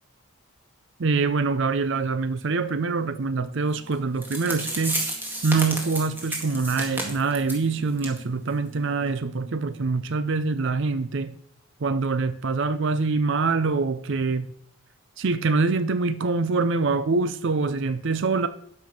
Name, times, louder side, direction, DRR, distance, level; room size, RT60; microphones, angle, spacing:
voice 1, 1.0-5.0 5.4-11.3 11.8-14.5 15.2-18.5, right 4 dB, 55° right, 0.5 m, -24 dB
sound 1, 3.9-4.0 4.2-7.6 8.0-8.2 8.5-8.6 9.1-9.2, right 1 dB, 10° right, 1.8 m, -31 dB
12.5 x 5.5 x 5.9 m
head